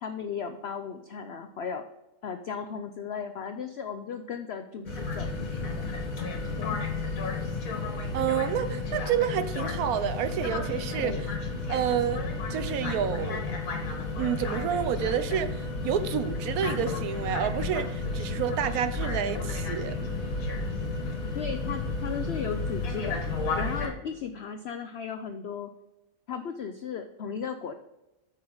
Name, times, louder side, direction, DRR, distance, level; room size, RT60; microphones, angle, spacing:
voice 1, 0.0-1.8 2.2-6.0 6.6-6.8 11.0-11.3 21.3-25.7 26.3-27.7, left 6 dB, 75° left, 0.5 m, -36 dB
sound 1, 4.9-23.9, left 3 dB, 60° left, 1.9 m, -32 dB
voice 2, 8.1-11.1 11.7-13.5 14.2-19.9, right 9 dB, 70° right, 1.1 m, -29 dB
8.6 x 6.4 x 3.9 m
omnidirectional pair, 1.8 m